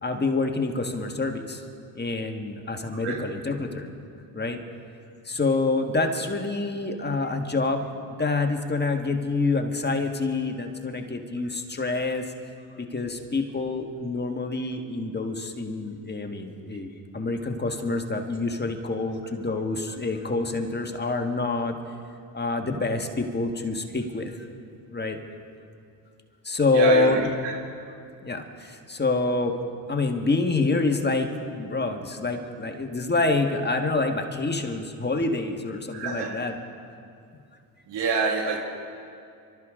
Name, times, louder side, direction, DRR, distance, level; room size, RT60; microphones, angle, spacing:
voice 1, 0.0-1.6 1.9-3.9 4.3-4.6 5.2-7.9 8.2-12.3 12.8-16.9 17.1-21.7 22.3-24.5 24.9-25.2 26.4-27.3 28.2-29.5 29.9-31.3 31.5-36.6, left 3 dB, 25° left, 4 dB, 1.6 m, -27 dB
voice 2, 2.9-3.2 26.7-27.5 35.9-36.4 37.9-38.6, right 4 dB, 70° right, 2 dB, 2.2 m, -26 dB
25.0 x 13.0 x 3.7 m, 2.4 s
supercardioid pair, 65°, 43 cm